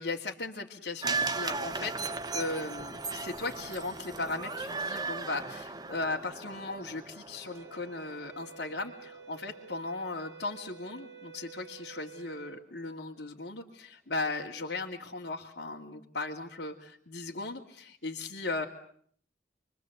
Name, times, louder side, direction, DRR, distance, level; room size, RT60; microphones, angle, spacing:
voice 1, 0.0-2.0 2.3-18.7, left 3 dB, 75° left, -2 dB, 2.5 m, -37 dB
sound 1, 1.0-9.3 9.6-9.7, right 4 dB, 25° right, 1.1 m, -37 dB
sound 2, 7.5-12.7, right 5 dB, 75° right, 2.0 m, -50 dB
29.5 x 23.5 x 8.0 m, 0.62 s
head